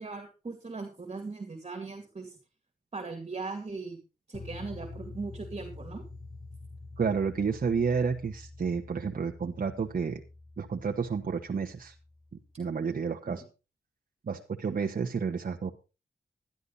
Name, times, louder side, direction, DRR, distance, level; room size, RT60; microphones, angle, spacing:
voice 1, 0.0-2.4 2.9-4.0 4.3-6.0 13.3-13.4, right 4 dB, 35° right, 4 dB, 2.4 m, -39 dB
sound 1, 4.3-12.5, left 3 dB, 30° left, 1.5 m, -47 dB
voice 2, 7.0-10.2 10.6-11.9 12.6-13.4 14.3-15.7, right 5 dB, 55° right, 2 dB, 1.2 m, -30 dB
12.0 x 11.5 x 4.0 m, 0.31 s
wide cardioid pair, 85°, 17 cm